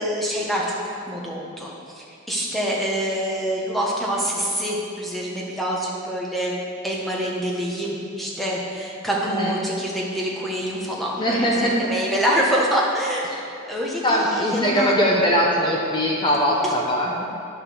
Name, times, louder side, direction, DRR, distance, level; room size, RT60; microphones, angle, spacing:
voice 1, 0.0-1.7 2.0-6.5 6.8-13.3 13.7-14.9 16.6-16.7, equal, ahead, -4 dB, 1.4 m, -26 dB
voice 2, 9.2-9.6 11.2-11.9 14.0-17.2, equal, 20° left, -3 dB, 0.9 m, -21 dB
10.0 x 5.8 x 6.7 m, 2.6 s
head